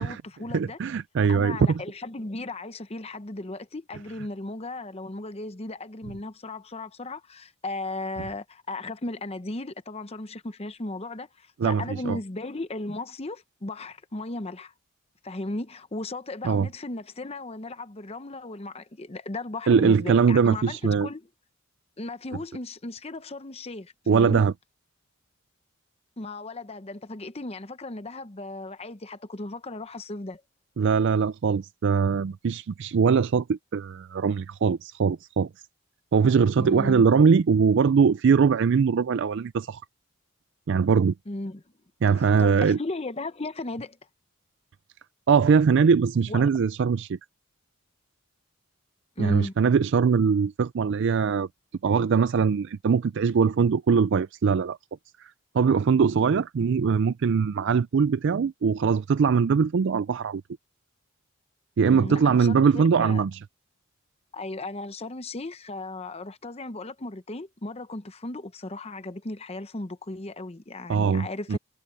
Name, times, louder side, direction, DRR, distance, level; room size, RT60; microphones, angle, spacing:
voice 1, 0.0-0.8 1.3-14.7 15.2-21.2 22.0-24.5 26.2-30.4 36.6-37.1 41.3-41.6 42.2-44.0 46.3-46.4 49.2-49.5 61.9-63.2 64.3-71.6, left 2 dB, 30° left, 0.8 m, -36 dB
voice 2, 0.5-1.8 11.6-12.2 16.4-16.7 19.7-21.1 24.1-24.5 30.8-35.5 36.1-39.8 40.7-41.1 42.0-42.8 45.3-47.2 49.2-51.5 51.8-54.8 55.2-60.4 61.8-63.4 70.9-71.6, right 6 dB, 55° right, 0.4 m, -22 dB
head